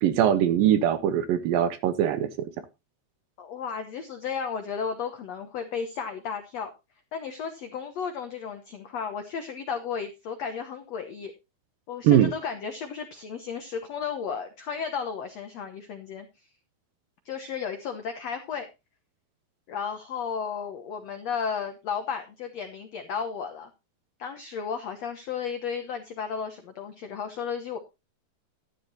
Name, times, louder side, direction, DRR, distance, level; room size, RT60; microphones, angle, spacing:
voice 1, 0.0-2.3 12.0-12.3, right 10 dB, 75° right, 12 dB, 2.3 m, -21 dB
voice 2, 3.4-6.7 7.1-11.3 11.9-16.3 17.2-18.7 19.7-23.7 24.2-27.8, left 6 dB, 80° left, 7 dB, 1.5 m, -33 dB
12.5 x 11.5 x 2.8 m, 0.25 s
omnidirectional pair, 4.6 m